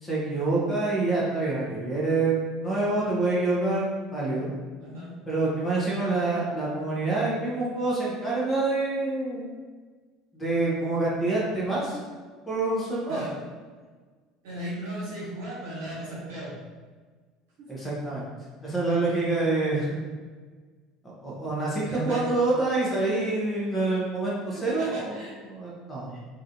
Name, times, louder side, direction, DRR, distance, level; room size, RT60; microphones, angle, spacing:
voice 1, 0.0-2.4 2.6-4.5 5.3-9.5 10.3-12.0 12.5-13.2 17.7-18.2 18.6-19.9 21.0-26.2, right 2 dB, 20° left, -6 dB, 1.2 m, -27 dB
voice 2, 4.8-5.1 13.1-13.4 14.4-16.6 17.6-17.7 21.8-22.2 24.5-25.3, right 1 dB, 70° right, -8 dB, 1.4 m, -36 dB
3.1 x 2.5 x 2.8 m, 1.5 s
hypercardioid pair, 70°, 0 cm